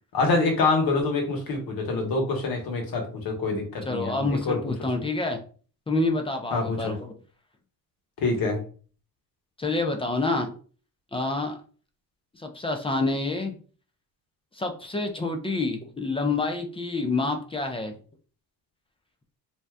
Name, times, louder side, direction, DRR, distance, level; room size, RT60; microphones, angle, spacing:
voice 1, 0.1-4.6 6.5-6.9 8.2-8.6, left 3 dB, 70° left, 2 dB, 1.1 m, -26 dB
voice 2, 3.8-5.4 5.9-7.0 9.6-10.6 11.1-11.6 12.4-13.6 14.5-17.9, left 3 dB, 15° left, 4 dB, 0.4 m, -27 dB
2.7 x 2.3 x 3.3 m, 0.40 s
cardioid pair, 115°, 37 cm